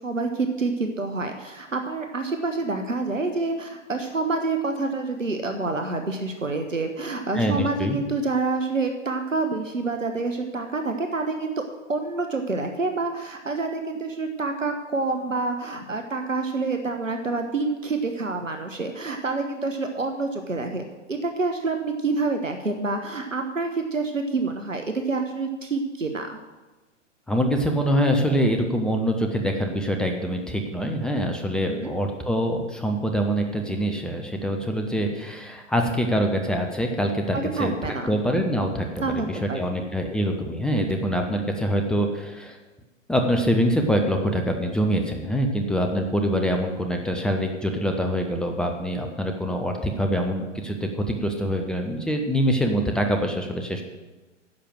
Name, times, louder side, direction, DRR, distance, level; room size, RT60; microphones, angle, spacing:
voice 1, 0.0-11.6 11.9-26.4 31.7-31.9 37.3-38.1 39.0-39.7, right 3 dB, 90° right, 5 dB, 1.2 m, -27 dB
voice 2, 7.3-8.0 27.3-37.7 38.1-42.6 43.1-53.8, equal, ahead, 3 dB, 0.4 m, -24 dB
10.5 x 6.6 x 7.6 m, 1.2 s
figure-of-eight pair, 110°, 37 cm